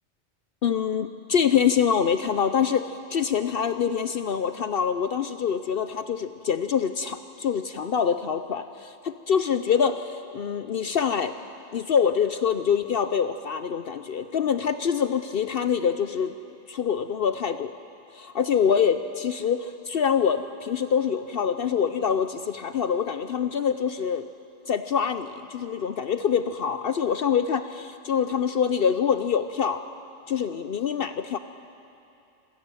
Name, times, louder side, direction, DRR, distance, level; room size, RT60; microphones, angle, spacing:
voice 1, 0.6-11.3 11.7-16.4 16.7-17.7 18.1-24.3 24.7-29.8 30.3-31.4, left 7 dB, 60° left, 10 dB, 0.8 m, -25 dB
26.5 x 14.5 x 9.0 m, 2.7 s
omnidirectional pair, 1.2 m